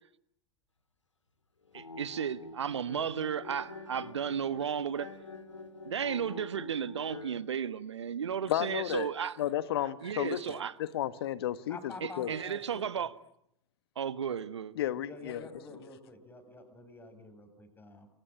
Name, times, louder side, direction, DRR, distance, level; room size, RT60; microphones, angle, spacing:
sound 1, 1.6-7.4, left 3 dB, 80° left, 2.5 m, -46 dB
voice 1, 1.7-5.1 5.8-9.4 9.8-10.7 12.0-13.1 14.0-14.7, right 8 dB, 70° right, 1.3 m, -34 dB
voice 2, 8.5-9.1 9.4-12.3 14.7-15.4, left 12 dB, 55° left, 1.5 m, -33 dB
voice 3, 11.7-13.1 15.0-18.1, left 2 dB, 15° left, 7.5 m, -48 dB
28.0 x 24.0 x 8.9 m
figure-of-eight pair, 90°, 15 cm